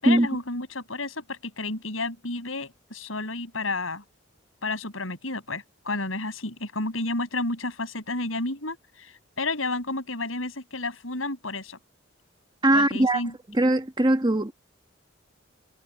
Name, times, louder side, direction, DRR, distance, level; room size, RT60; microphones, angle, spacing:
voice 1, 0.0-4.0 4.6-11.8 12.7-13.3, left 2 dB, 80° left, 8.0 m, -31 dB
voice 2, 12.6-13.2 13.5-14.5, right 1 dB, 20° right, 1.4 m, -20 dB
head